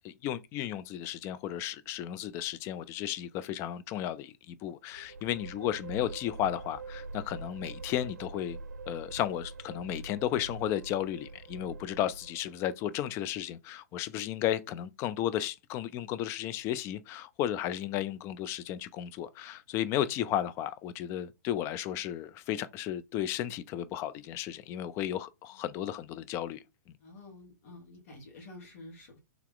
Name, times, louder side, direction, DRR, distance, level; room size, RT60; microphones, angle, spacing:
voice 1, 0.0-8.6 8.9-26.6, left 11 dB, 25° left, 0.4 m, -34 dB
sound 1, 4.9-12.8, right 3 dB, 70° right, 0.6 m, -44 dB
voice 2, 27.0-29.2, left 2 dB, 50° left, 1.6 m, -50 dB
3.4 x 2.9 x 3.8 m
figure-of-eight pair, 110°, 10 cm